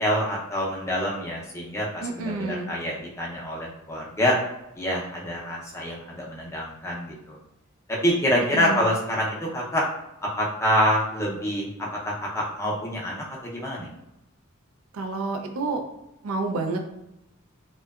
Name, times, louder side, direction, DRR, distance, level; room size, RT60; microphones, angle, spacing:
voice 1, 0.0-4.4 4.8-7.4 7.9-9.8 10.4-11.7 12.0-13.9, equal, 15° left, -4 dB, 0.5 m, -26 dB
voice 2, 2.0-2.7 8.3-8.9 14.9-15.8 16.2-16.9, right 3 dB, 75° right, 4 dB, 0.4 m, -29 dB
2.7 x 2.2 x 2.3 m, 0.88 s
head